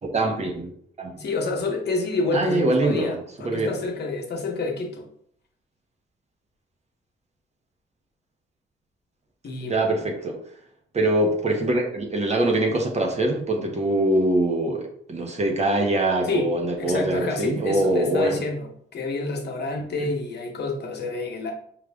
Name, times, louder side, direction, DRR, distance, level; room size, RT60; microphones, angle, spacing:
voice 1, 0.0-0.7 1.0-1.1 2.3-3.2 3.4-3.7 9.7-10.4 10.9-18.4, right 1 dB, 35° right, 1 dB, 0.9 m, -23 dB
voice 2, 1.2-5.1 9.4-9.9 16.2-21.5, left 3 dB, 55° left, 2 dB, 1.0 m, -28 dB
5.1 x 2.4 x 3.4 m, 0.66 s
cardioid pair, 85°, 20 cm